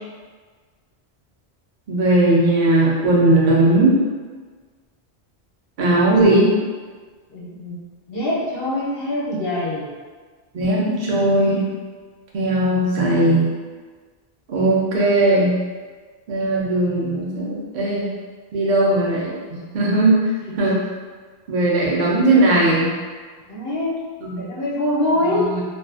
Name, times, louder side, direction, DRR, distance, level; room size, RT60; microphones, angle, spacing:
voice 1, 1.9-4.0 5.8-6.5 10.5-11.6 12.3-13.5 14.5-15.5 16.3-18.1 18.5-19.3 19.7-20.2 20.6-20.8 21.5-22.9 24.2-24.4 25.3-25.6, right 2 dB, 55° right, -5 dB, 0.7 m, -18 dB
voice 2, 7.3-7.8 8.1-9.9 20.4-20.6 23.5-24.0 24.4-25.5, left 1 dB, 65° left, -7 dB, 0.8 m, -24 dB
2.4 x 2.3 x 2.4 m, 1.5 s
omnidirectional pair, 1.1 m